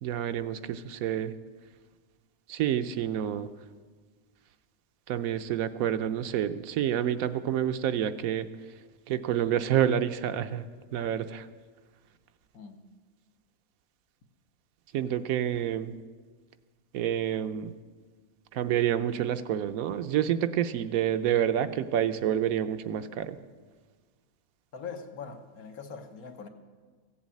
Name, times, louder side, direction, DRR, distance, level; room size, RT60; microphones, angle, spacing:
voice 1, 0.0-1.3 2.5-3.5 5.1-8.5 9.1-10.7 10.9-11.5 14.9-15.9 16.9-17.7 18.5-23.4, right 10 dB, 75° right, 11 dB, 1.1 m, -28 dB
voice 2, 12.5-12.8 24.7-26.5, left 5 dB, 85° left, 6 dB, 1.5 m, -42 dB
15.5 x 7.3 x 8.4 m, 1.5 s
omnidirectional pair, 1.5 m